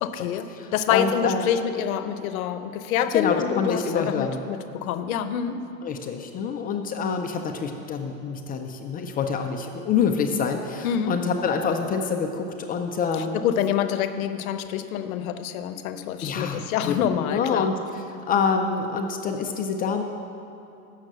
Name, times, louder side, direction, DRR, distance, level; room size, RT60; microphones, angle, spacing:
voice 1, 0.0-5.6 10.8-11.2 13.2-17.7, left 9 dB, 80° left, 11 dB, 0.8 m, -27 dB
voice 2, 0.5-1.5 3.1-4.4 5.8-13.4 16.2-18.0 18.3-20.0, left 6 dB, 20° left, 4 dB, 0.4 m, -26 dB
7.2 x 6.5 x 7.9 m, 2.9 s
supercardioid pair, 125°, 42 cm